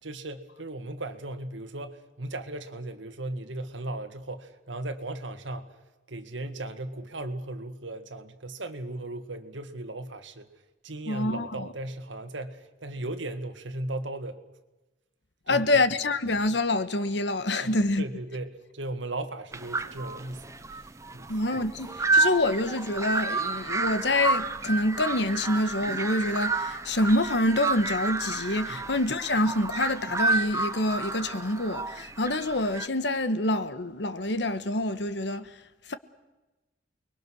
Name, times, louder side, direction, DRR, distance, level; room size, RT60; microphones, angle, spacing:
voice 1, 0.0-5.8 6.1-10.5 10.8-14.4 15.5-15.8 17.6-20.9 21.1-21.4 28.7-28.9, right 2 dB, 90° right, 1.9 m, -37 dB
voice 2, 11.1-11.7 15.5-18.0 21.3-35.5 35.9-36.0, left 1 dB, 70° left, 1.4 m, -26 dB
sound 1, 19.5-32.9, right 3 dB, 15° right, 0.7 m, -30 dB
29.0 x 22.0 x 6.4 m
head